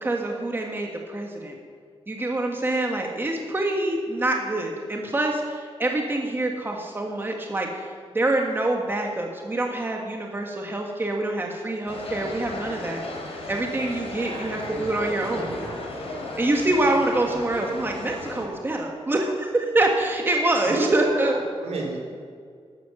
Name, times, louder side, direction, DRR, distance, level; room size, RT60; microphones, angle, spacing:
voice 1, 0.0-1.6 2.1-7.8 8.1-13.0 13.5-15.6 16.4-21.3, right 2 dB, 20° right, 1 dB, 1.6 m, -25 dB
sound 1, 11.9-18.4, left 2 dB, 75° left, 3.5 m, -35 dB
voice 2, 14.2-15.8 20.6-22.0, right 3 dB, 80° right, 0 dB, 4.0 m, -32 dB
13.5 x 12.5 x 7.7 m, 2.2 s
wide cardioid pair, 170°, 11 cm